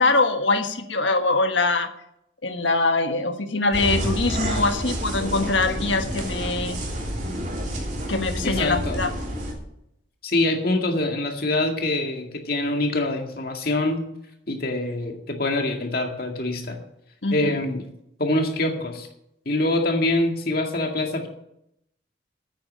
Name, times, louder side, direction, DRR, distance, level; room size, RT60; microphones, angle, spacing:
voice 1, 0.0-1.9 2.4-6.8 8.1-9.1 17.2-17.5, left 3 dB, 80° left, 7 dB, 1.4 m, -23 dB
sound 1, 3.7-9.5, equal, 40° right, 3.2 m, -29 dB
voice 2, 8.4-9.0 10.2-14.1 14.5-16.8 17.3-17.8 18.2-19.1 19.5-21.3, left 2 dB, 50° left, 3 dB, 2.0 m, -25 dB
9.6 x 9.1 x 8.6 m, 0.79 s
head